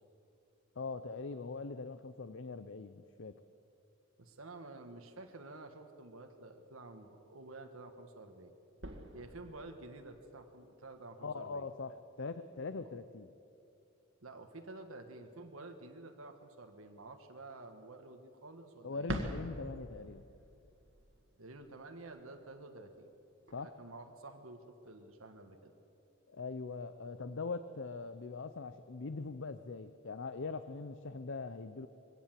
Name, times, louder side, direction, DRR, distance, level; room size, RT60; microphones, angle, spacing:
voice 1, 0.8-3.4 11.2-13.3 18.8-20.2 23.5-23.7 26.3-31.9, left 4 dB, 60° left, 12 dB, 0.6 m, -42 dB
voice 2, 4.2-8.5 9.1-11.7 14.2-19.1 21.4-23.1 23.6-25.7, right 2 dB, 90° right, 5 dB, 1.5 m, -50 dB
sound 1, 8.3-11.1 18.9-23.7, right 1 dB, 65° right, 2.0 m, -46 dB
23.0 x 17.0 x 7.5 m, 2.7 s
head